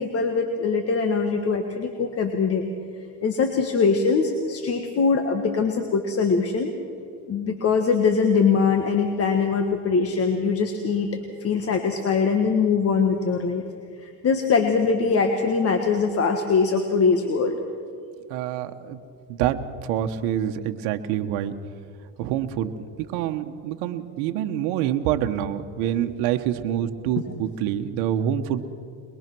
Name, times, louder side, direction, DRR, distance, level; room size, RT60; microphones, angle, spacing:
voice 1, 0.0-2.6 3.2-6.7 7.3-11.1 11.4-13.6 14.0-17.6, left 5 dB, 35° left, 5 dB, 1.5 m, -22 dB
voice 2, 18.3-19.0 19.3-21.5 22.2-22.7 23.1-28.6, right 10 dB, 75° right, 6 dB, 1.3 m, -26 dB
22.0 x 22.0 x 6.2 m, 2.4 s
cardioid pair, 130°, 42 cm